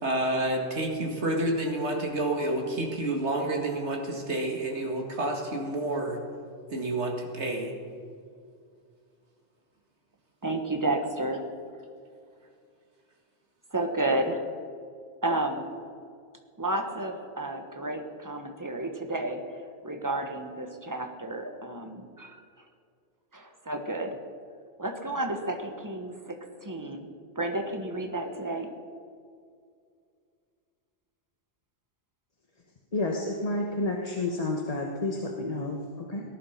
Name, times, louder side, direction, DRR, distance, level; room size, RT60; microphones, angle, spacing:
voice 1, 0.0-6.2 6.7-7.7, right 1 dB, 90° right, 1 dB, 2.3 m, -29 dB
voice 2, 10.4-11.5 13.7-14.5 15.2-15.7 16.6-19.4 19.8-22.4 23.3-24.2 24.8-27.1 27.3-28.7, right 2 dB, 20° right, 5 dB, 1.2 m, -31 dB
voice 3, 32.9-36.2, left 2 dB, 35° left, 0 dB, 1.2 m, -30 dB
18.5 x 11.0 x 5.8 m, 2.2 s
omnidirectional pair, 1.1 m